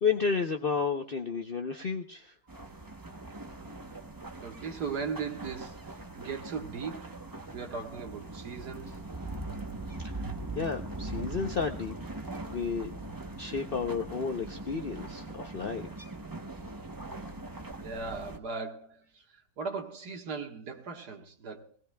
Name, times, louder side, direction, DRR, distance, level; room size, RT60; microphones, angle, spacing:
voice 1, 0.0-2.3 10.5-11.9 12.5-12.9 13.4-15.9, left 5 dB, 50° left, 0.6 m, -31 dB
sound 1, 2.5-18.4, right 2 dB, 20° right, 0.6 m, -41 dB
voice 2, 4.4-7.1 7.5-9.0 17.8-21.8, right 5 dB, 70° right, 2.0 m, -38 dB
20.0 x 18.5 x 2.3 m
omnidirectional pair, 1.8 m